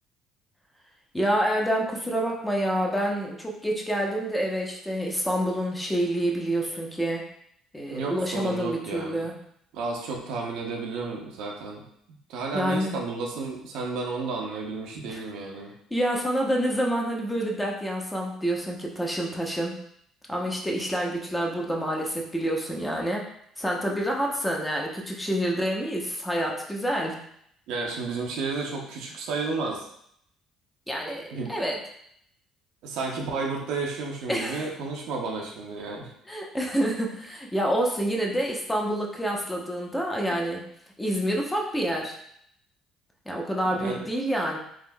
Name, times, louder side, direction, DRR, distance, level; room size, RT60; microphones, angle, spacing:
voice 1, 1.1-7.3 7.7-9.4 12.5-13.0 15.1-15.2 15.9-19.8 20.3-23.3 23.6-27.2 30.9-31.8 34.3-34.7 36.3-40.6 41.0-42.2 43.3-44.6, right 1 dB, 10° left, -1 dB, 0.7 m, -27 dB
voice 2, 7.9-9.2 9.7-11.8 12.3-15.7 27.7-29.9 31.3-31.5 32.8-36.1 43.8-44.0, right 3 dB, 75° right, 0 dB, 0.6 m, -32 dB
3.5 x 2.5 x 2.2 m, 0.70 s
supercardioid pair, 70°, 0 cm